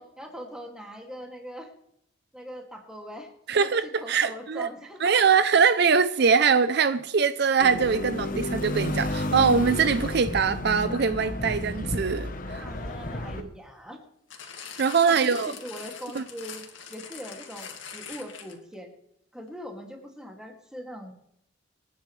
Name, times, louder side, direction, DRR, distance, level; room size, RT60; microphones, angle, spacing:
voice 1, 0.0-1.7 2.3-5.2 5.8-5.9 12.6-14.0 15.1-18.9 19.3-21.1, equal, 5° right, 2.3 m, -41 dB
voice 2, 3.5-4.7 5.0-12.6 13.4-13.5 14.8-15.5 16.2-16.3, right 5 dB, 55° right, 0.5 m, -22 dB
sound 1, 7.6-13.4, left 1 dB, 45° left, 1.1 m, -31 dB
sound 2, 14.3-18.7 19.5-19.6, left 7 dB, 75° left, 2.2 m, -43 dB
26.0 x 9.7 x 3.3 m
head